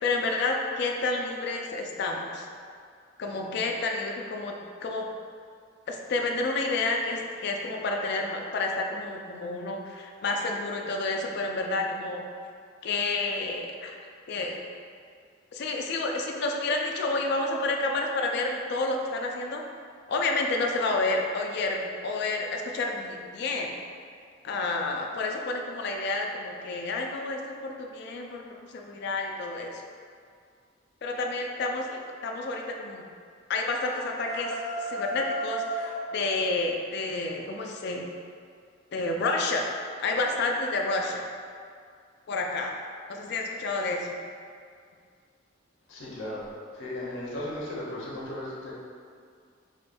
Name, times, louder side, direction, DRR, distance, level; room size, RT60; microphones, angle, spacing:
voice 1, 0.0-2.5 3.2-4.5 4.8-5.1 5.9-12.2 12.8-14.6 15.5-19.6 20.1-23.7 24.4-29.8 31.0-33.1 33.5-38.1 38.9-39.7 40.0-41.2 42.3-42.7 43.1-44.2, left 3 dB, 60° left, 2 dB, 0.3 m, -30 dB
sound 1, 33.8-36.0, equal, 30° left, 1.1 m, -33 dB
voice 2, 45.9-46.5 46.7-48.7, left 1 dB, 80° left, -5 dB, 0.8 m, -36 dB
4.9 x 2.2 x 2.5 m, 2.2 s
head